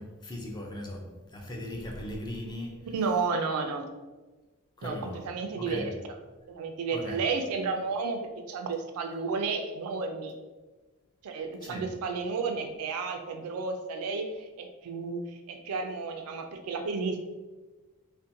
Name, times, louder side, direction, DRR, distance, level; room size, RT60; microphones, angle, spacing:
voice 1, 0.0-2.9 4.8-5.2 5.6-5.9 6.9-7.2 11.6-11.9, left 1 dB, 20° left, 0 dB, 0.3 m, -38 dB
voice 2, 2.9-3.9 4.8-5.8 6.5-8.2 8.5-10.3 11.2-14.3 14.6-15.2 15.5-17.3, right 4 dB, 80° right, 5 dB, 0.3 m, -32 dB
2.5 x 2.1 x 2.6 m, 1.2 s
head